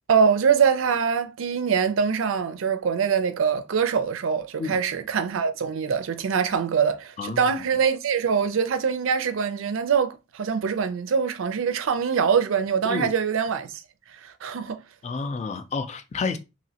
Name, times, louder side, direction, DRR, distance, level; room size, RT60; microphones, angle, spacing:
voice 1, 0.1-13.7 14.2-14.8, right 6 dB, 70° right, 0.4 m, -23 dB
voice 2, 7.2-7.5 12.9-13.1 15.0-16.4, left 4 dB, 35° left, 0.4 m, -30 dB
3.0 x 2.8 x 2.7 m
head